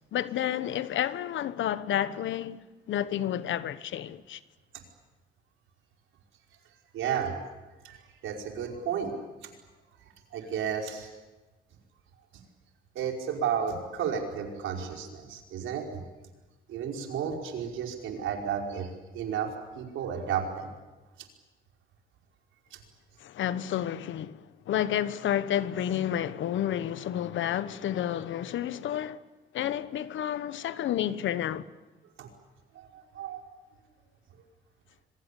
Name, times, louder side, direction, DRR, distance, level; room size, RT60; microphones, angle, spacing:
voice 1, 0.1-2.6 2.9-4.4 23.2-29.2 29.5-31.7, left 11 dB, 75° left, 1.2 m, -30 dB
voice 2, 6.9-7.3 7.8-9.1 10.3-11.1 13.0-16.0 16.7-18.9 19.1-20.7 32.2-32.3 32.8-33.4, right 7 dB, 85° right, 5.3 m, -32 dB
26.5 x 23.5 x 8.5 m
cardioid pair, 90°, 20 cm